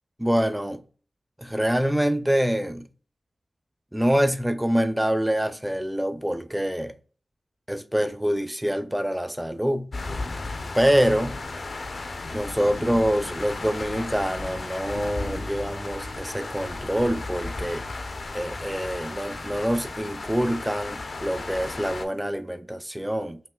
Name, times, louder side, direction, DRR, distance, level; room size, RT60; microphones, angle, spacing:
voice 1, 0.2-0.8 1.4-2.9 3.9-6.9 7.7-9.9 10.7-11.4 12.3-17.9 18.3-23.4, equal, 10° right, 0.4 m, -25 dB
sound 1, 9.9-22.0, left 3 dB, 70° left, 0.5 m, -35 dB
sound 2, 14.9-18.6, right 2 dB, 70° right, 0.7 m, -44 dB
5.3 x 2.8 x 2.2 m
wide cardioid pair, 70°, 0 cm